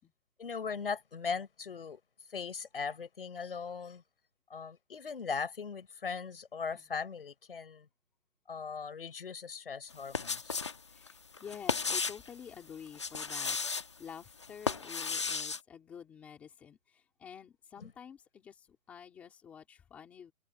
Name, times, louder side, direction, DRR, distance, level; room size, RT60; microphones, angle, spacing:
voice 1, 0.4-2.0 2.3-4.0 4.5-7.9 8.5-10.6 17.8-17.9, left 5 dB, 35° left, 6.3 m, -39 dB
sound 1, 9.9-10.8 11.1-12.3 12.9-13.9 14.4-15.6, left 4 dB, 20° left, 1.4 m, -34 dB
voice 2, 10.9-13.6 14.0-20.3, left 7 dB, 5° left, 2.6 m, -49 dB
hypercardioid pair, 175°, 45 cm